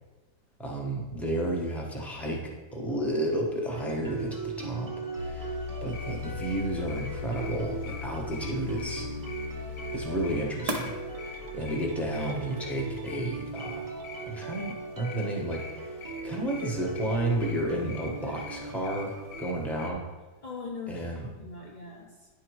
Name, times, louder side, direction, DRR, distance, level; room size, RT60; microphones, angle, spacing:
voice 1, 0.6-9.1 9.9-13.9 14.2-20.0 20.9-21.3, right 1 dB, ahead, -2 dB, 0.8 m, -32 dB
sound 1, 3.7-19.4, right 3 dB, 25° right, 0.4 m, -39 dB
sound 2, 5.2-12.1, left 4 dB, 80° right, 1.6 m, -38 dB
sound 3, 5.9-19.9, left 4 dB, 85° left, 1.3 m, -46 dB
voice 2, 18.0-18.5 20.4-22.3, left 4 dB, 65° left, -1 dB, 0.4 m, -41 dB
10.0 x 3.6 x 4.6 m, 1.3 s
omnidirectional pair, 1.7 m